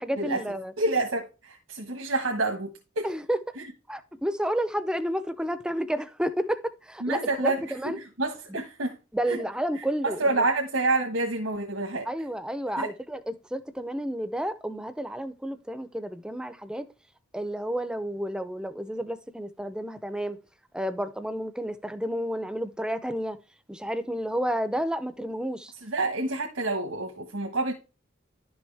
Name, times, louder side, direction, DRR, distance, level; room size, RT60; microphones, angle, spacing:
voice 1, 0.0-0.7 3.0-3.4 3.9-8.0 8.5-8.6 9.1-10.5 12.1-13.2 13.5-16.8 17.3-20.4 20.7-23.4 23.7-25.7, equal, 5° right, 0.5 m, -31 dB
voice 2, 0.8-3.1 3.6-3.7 7.0-7.9 8.2-9.0 9.3-9.4 10.0-12.1 12.8-12.9 25.8-27.7, right 2 dB, 85° right, 1.4 m, -28 dB
11.0 x 6.2 x 3.4 m
head